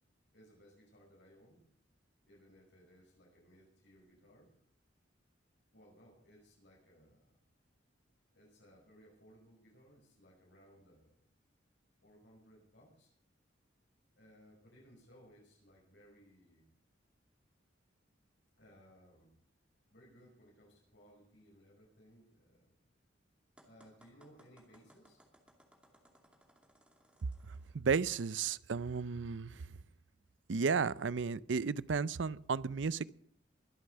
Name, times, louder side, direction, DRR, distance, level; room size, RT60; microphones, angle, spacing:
voice 1, 0.3-1.7 2.2-4.5 5.7-7.4 8.3-11.2 12.0-13.1 14.2-16.7 18.6-19.4 19.9-22.8 23.6-25.2, equal, 65° left, -3 dB, 5.7 m, -62 dB
sound 1, 23.6-27.8, right 1 dB, 5° right, 2.5 m, -65 dB
voice 2, 27.7-29.6 30.5-33.1, right 5 dB, 70° right, 19 dB, 0.5 m, -33 dB
22.0 x 8.3 x 6.7 m, 0.66 s
head